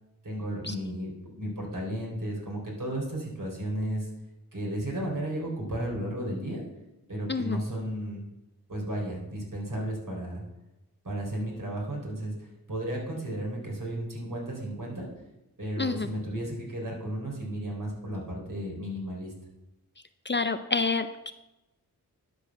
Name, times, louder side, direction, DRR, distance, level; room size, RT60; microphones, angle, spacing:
voice 1, 0.2-4.1 4.5-6.6 7.1-8.2 8.7-10.4 11.0-15.1 15.6-19.3, right 1 dB, 55° right, -2 dB, 4.1 m, -34 dB
voice 2, 15.8-16.1 20.3-21.3, left 4 dB, 30° left, 10 dB, 0.5 m, -28 dB
11.5 x 4.8 x 6.0 m, 0.99 s
cardioid pair, 50°, 38 cm